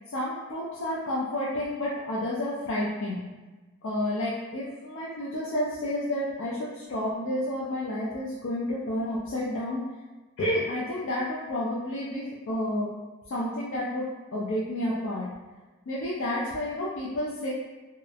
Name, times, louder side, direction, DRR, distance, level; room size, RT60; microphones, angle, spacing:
voice 1, 0.0-3.2 3.8-9.8 10.4-12.9 13.3-15.3 15.9-17.5, left 1 dB, 60° left, -6 dB, 0.4 m, -30 dB
2.8 x 2.0 x 2.3 m, 1.2 s
head